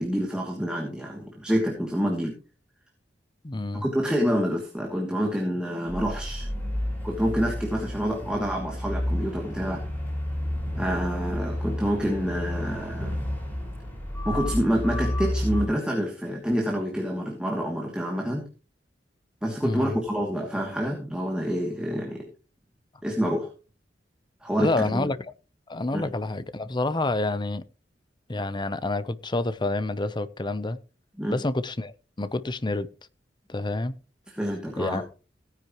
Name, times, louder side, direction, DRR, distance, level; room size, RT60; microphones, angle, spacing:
voice 1, 0.0-2.3 3.7-6.5 7.0-9.9 10.8-13.2 14.3-18.4 19.4-22.2 23.0-23.5 24.4-25.1 25.9-26.1 31.2-31.4 34.3-35.0, equal, 5° right, 2.5 m, -27 dB
voice 2, 3.4-3.8 19.6-20.0 24.6-25.2 25.7-27.6 28.3-30.8 31.3-32.9 33.5-33.9 34.8-35.0, left 2 dB, 25° left, 0.7 m, -28 dB
sound 1, 5.9-15.6, left 1 dB, 10° left, 5.4 m, -31 dB
17.0 x 9.9 x 3.1 m
head